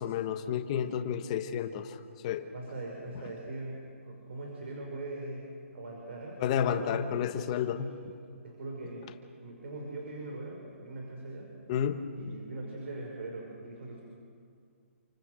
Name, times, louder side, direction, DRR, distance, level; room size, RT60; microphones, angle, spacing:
voice 1, 0.0-2.0 2.2-2.5 6.4-7.9 11.7-12.0, left 9 dB, 25° left, 7 dB, 1.3 m, -31 dB
voice 2, 2.5-7.2 7.7-8.0 8.4-11.5 12.1-14.0, right 2 dB, 60° right, 0 dB, 5.5 m, -41 dB
28.5 x 25.5 x 6.6 m, 2.3 s
hypercardioid pair, 170°, 7 cm